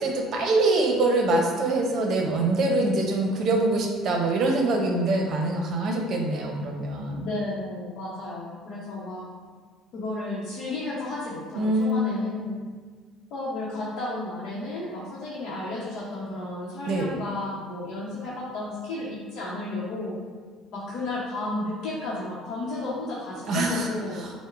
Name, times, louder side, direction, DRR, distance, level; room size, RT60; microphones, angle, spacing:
voice 1, 0.0-7.2 11.5-12.0 16.9-17.1 23.5-23.9 24.2-24.3, right 2 dB, 55° right, 1 dB, 0.7 m, -24 dB
voice 2, 7.2-9.3 9.9-12.6 13.3-20.1 20.7-24.2, left 2 dB, 65° left, -7 dB, 0.8 m, -33 dB
6.3 x 2.1 x 2.5 m, 1.5 s
supercardioid pair, 95°, 0 cm